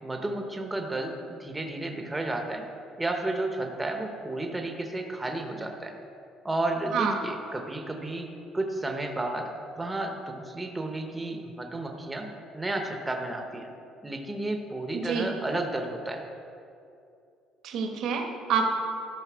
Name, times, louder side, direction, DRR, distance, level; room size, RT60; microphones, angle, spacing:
voice 1, 0.0-2.7 3.0-5.9 6.4-8.3 8.5-9.5 9.8-12.3 12.5-13.7 14.0-16.2, right 2 dB, 10° right, 3 dB, 0.8 m, -32 dB
voice 2, 14.9-15.3 17.6-18.6, right 6 dB, 60° right, 3 dB, 1.1 m, -27 dB
12.5 x 5.2 x 6.1 m, 2.6 s
cardioid pair, 150°, 0 cm